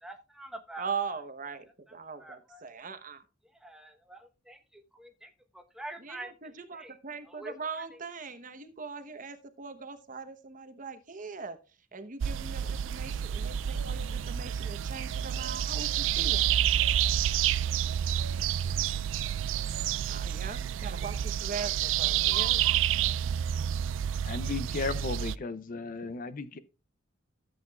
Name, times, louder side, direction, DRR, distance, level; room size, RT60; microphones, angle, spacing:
voice 1, 0.0-1.2 2.2-2.6 3.4-7.0 7.2-8.0 21.5-21.7, right 1 dB, 5° right, 1.0 m, -47 dB
voice 2, 0.8-3.2 6.0-11.6 11.9-16.4 20.1-22.6, right 5 dB, 40° right, 1.0 m, -40 dB
sound 1, 12.2-25.4, right 10 dB, 75° right, 0.3 m, -29 dB
voice 3, 24.2-26.6, left 4 dB, 45° left, 0.5 m, -35 dB
13.5 x 8.1 x 2.3 m
head